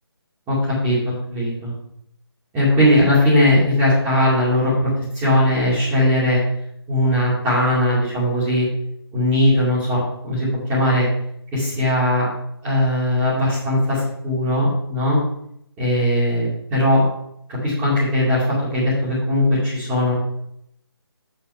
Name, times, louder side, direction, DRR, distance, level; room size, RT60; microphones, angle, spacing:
voice 1, 0.8-1.7 2.5-4.9 5.1-6.4 6.9-8.7 9.1-11.1 11.5-12.3 12.6-15.2 15.8-17.0 17.5-18.4 18.7-20.1, left 1 dB, 10° right, -10 dB, 2.6 m, -19 dB
7.2 x 7.0 x 5.0 m, 0.74 s
figure-of-eight pair, 165°, 14 cm